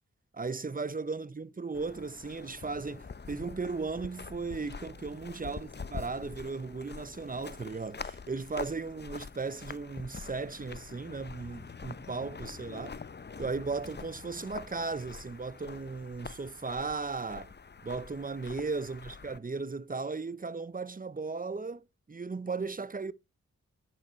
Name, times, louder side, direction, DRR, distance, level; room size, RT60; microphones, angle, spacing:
voice 1, 0.3-12.9 13.4-17.5 17.8-23.1, right 4 dB, 25° right, 0.9 m, -36 dB
sound 1, 1.7-19.4, left 5 dB, 35° left, 0.8 m, -45 dB
9.2 x 8.0 x 4.5 m
cardioid pair, 40°, 32 cm